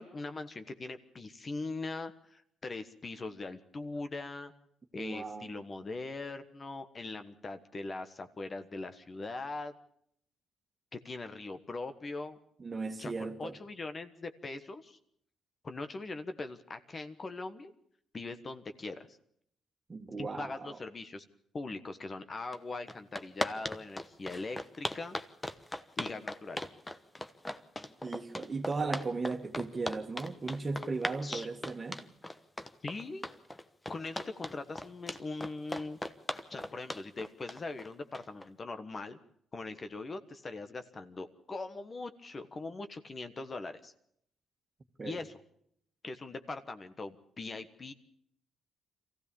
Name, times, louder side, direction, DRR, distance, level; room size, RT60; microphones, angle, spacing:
voice 1, 0.0-4.5 4.9-9.7 10.9-12.4 13.0-15.0 15.6-17.7 18.1-19.1 20.2-21.2 21.5-25.2 26.0-26.6 31.2-31.5 32.8-33.2 33.9-36.0 36.5-39.2 39.5-43.9 45.0-45.3 46.0-47.9, left 3 dB, 35° left, 1.3 m, -41 dB
voice 2, 5.0-5.6 12.6-13.6 19.9-20.8 28.0-32.0 45.0-45.2, right 3 dB, 30° right, 1.8 m, -36 dB
sound 1, 22.5-22.6 22.9-38.5, left 1 dB, 15° left, 1.1 m, -38 dB
23.5 x 15.5 x 7.0 m
cardioid pair, 90°, 0 cm